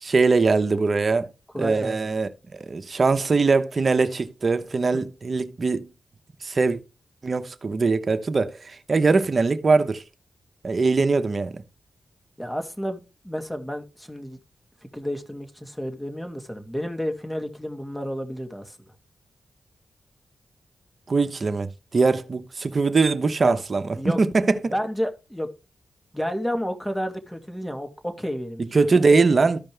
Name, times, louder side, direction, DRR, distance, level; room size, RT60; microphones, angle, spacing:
voice 1, 0.0-1.3 1.6-5.9 6.4-6.8 7.2-10.0 10.6-11.6 21.1-24.7 28.6-29.6, right 4 dB, 50° right, 1.0 m, -22 dB
voice 2, 1.5-2.0 4.9-5.0 12.4-13.0 13.2-14.4 14.9-18.8 23.4-23.6 24.0-24.2 24.7-25.5 26.1-28.6, equal, 5° left, 2.3 m, -30 dB
14.0 x 5.2 x 3.4 m
cardioid pair, 60°, 0 cm